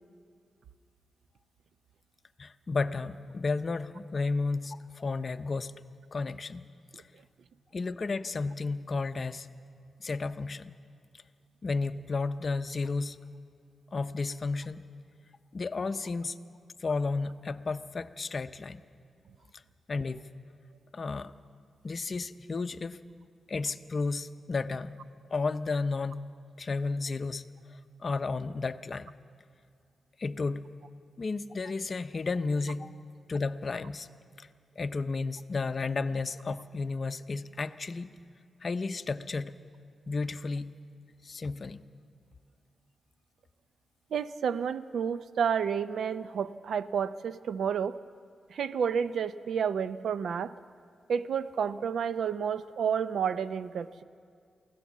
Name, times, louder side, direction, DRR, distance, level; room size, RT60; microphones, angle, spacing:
voice 1, 2.4-5.7 6.1-6.7 7.7-9.5 10.0-10.7 11.6-13.2 13.9-14.8 15.5-16.4 16.8-18.8 19.9-20.2 20.9-21.3 21.8-23.0 23.5-25.0 25.3-26.2 26.6-27.4 27.7-29.1 30.2-30.6 31.2-32.9 33.3-34.1 34.4-34.5 34.8-38.1 38.6-39.6 40.1-40.7 41.2-41.8, left 3 dB, 45° left, 10 dB, 0.7 m, -32 dB
voice 2, 44.1-48.0 48.5-50.5 51.1-54.0, right 7 dB, 80° right, 14 dB, 0.5 m, -30 dB
23.5 x 16.5 x 7.3 m, 2.2 s
cardioid pair, 85°, 0 cm